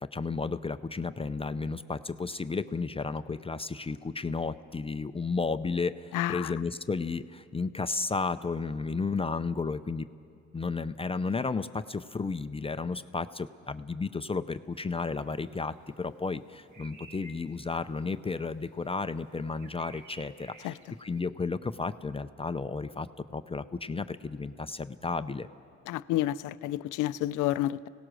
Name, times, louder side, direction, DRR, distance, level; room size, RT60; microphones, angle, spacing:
voice 1, 0.0-10.1 10.5-25.5, left 4 dB, 20° left, 11 dB, 0.5 m, -33 dB
voice 2, 6.1-6.5 20.6-20.7 25.9-27.9, left 14 dB, 85° left, 16 dB, 0.5 m, -30 dB
sound 1, 14.7-21.2, right 3 dB, 70° right, 2.6 m, -55 dB
26.0 x 17.5 x 6.3 m, 2.4 s
cardioid pair, 90°, 30 cm